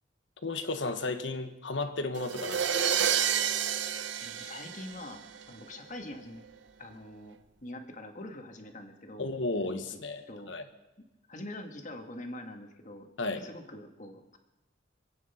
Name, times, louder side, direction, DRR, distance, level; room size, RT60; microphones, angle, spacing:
voice 1, 0.4-3.1 9.2-10.6 13.2-13.4, left 3 dB, 80° left, 8 dB, 1.3 m, -34 dB
sound 1, 2.2-5.4, right 9 dB, 75° right, 0.8 m, -29 dB
voice 2, 4.2-6.4 6.8-9.3 10.3-10.5 11.3-14.4, left 1 dB, 40° left, 4 dB, 1.8 m, -44 dB
26.0 x 9.2 x 5.8 m, 1.0 s
head